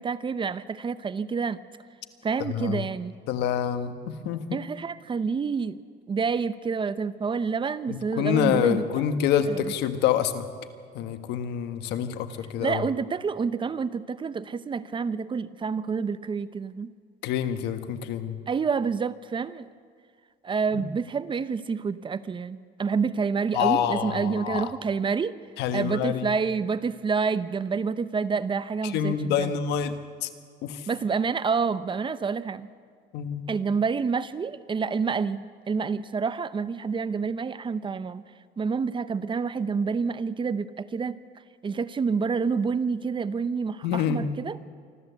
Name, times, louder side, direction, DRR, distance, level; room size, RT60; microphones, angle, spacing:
voice 1, 0.0-1.6 2.2-3.1 4.5-5.8 6.1-8.8 9.5-9.7 12.6-16.9 18.5-19.7 20.4-25.4 25.7-29.5 30.9-32.7 33.5-38.2 38.6-41.2 41.6-44.6, right 5 dB, 30° right, 14 dB, 0.8 m, -28 dB
voice 2, 2.4-2.9 3.3-4.6 7.9-10.5 10.9-12.8 17.2-18.4 20.7-20.8 23.5-24.7 25.6-26.3 28.8-30.3 30.6-30.9 33.1-33.4 43.8-44.3, left 9 dB, 85° left, 10 dB, 1.4 m, -27 dB
25.5 x 13.5 x 8.1 m, 2.1 s
cardioid pair, 110°, 17 cm